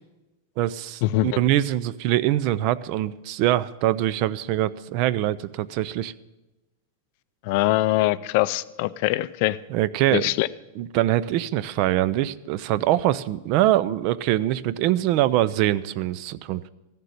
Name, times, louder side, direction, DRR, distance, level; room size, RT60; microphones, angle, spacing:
voice 1, 0.6-6.1 9.7-10.3 10.8-16.7, right 14 dB, 35° right, 18 dB, 0.4 m, -23 dB
voice 2, 7.4-9.6 10.1-10.5, left 17 dB, 40° left, 17 dB, 0.4 m, -22 dB
14.5 x 6.7 x 9.3 m, 1.0 s
supercardioid pair, 170°, 0 cm